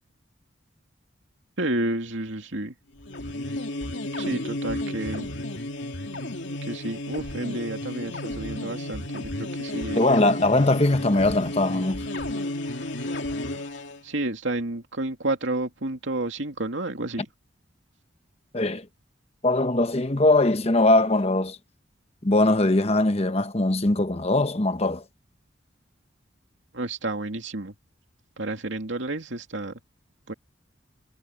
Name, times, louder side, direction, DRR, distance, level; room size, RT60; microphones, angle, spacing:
voice 1, 1.6-2.7 4.2-5.3 6.6-10.0 14.0-17.3 26.7-27.7 28.4-29.8 30.3-30.4, right 2 dB, 80° right, 2.5 m, -30 dB
sound 1, 3.0-14.0, left 1 dB, 70° left, 2.7 m, -32 dB
voice 2, 9.9-12.0 18.5-18.9 19.4-21.6 22.2-25.0, left 2 dB, 35° left, 1.1 m, -21 dB
head